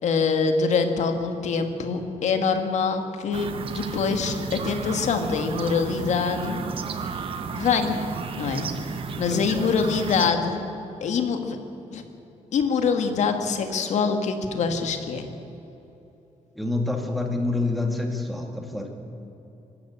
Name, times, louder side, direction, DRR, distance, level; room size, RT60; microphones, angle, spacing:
voice 1, 0.0-6.6 7.5-8.0 8.3-8.7 9.2-10.7 11.0-11.6 11.9-12.0 12.5-15.3, left 5 dB, 65° left, 6 dB, 1.9 m, -24 dB
sound 1, 3.3-10.3, right 5 dB, 45° right, 1.2 m, -33 dB
voice 2, 9.3-9.7 16.6-19.0, left 2 dB, ahead, 2 dB, 2.1 m, -27 dB
23.0 x 13.0 x 8.7 m, 3.0 s
wide cardioid pair, 165°, 13 cm